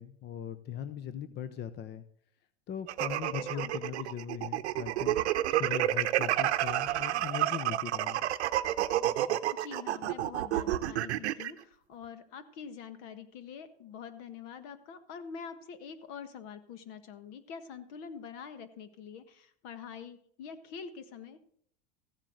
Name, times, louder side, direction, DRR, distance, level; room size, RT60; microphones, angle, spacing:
voice 1, 0.0-2.0 2.7-5.2 5.5-8.2, left 9 dB, 35° left, 12 dB, 0.7 m, -39 dB
sound 1, 2.9-11.5, right 14 dB, 85° right, 0.8 m, -30 dB
voice 2, 3.2-3.7 9.6-21.4, left 6 dB, 60° left, 12 dB, 1.6 m, -45 dB
15.0 x 7.5 x 6.4 m, 0.64 s
supercardioid pair, 110°, 33 cm